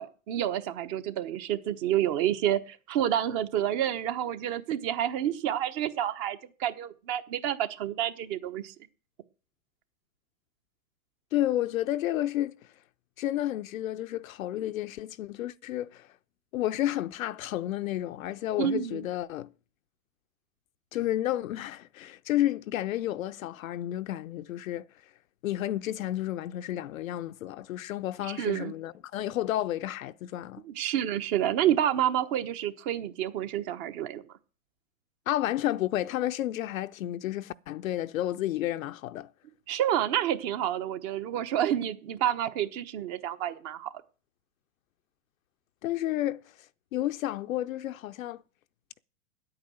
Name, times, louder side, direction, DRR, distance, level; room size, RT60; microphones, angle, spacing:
voice 1, 0.0-8.7 18.6-19.1 28.3-28.7 30.7-34.2 39.7-43.9, right 11 dB, 40° right, 1.1 m, -29 dB
voice 2, 11.3-12.5 13.2-16.1 16.5-19.5 20.9-24.9 25.4-30.6 35.3-39.3 45.8-46.4 46.9-48.4, left 13 dB, 70° left, 0.6 m, -31 dB
10.0 x 8.8 x 7.7 m
hypercardioid pair, 130°, 42 cm